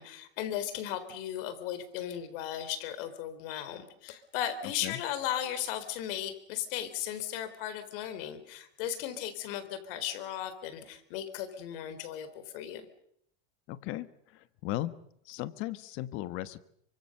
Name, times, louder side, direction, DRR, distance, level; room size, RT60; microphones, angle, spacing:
voice 1, 0.0-12.9, left 10 dB, 60° left, 12 dB, 4.1 m, -36 dB
voice 2, 13.7-15.0 15.2-16.6, left 15 dB, 40° left, 14 dB, 1.4 m, -37 dB
29.0 x 25.0 x 6.8 m, 0.71 s
supercardioid pair, 175°, 31 cm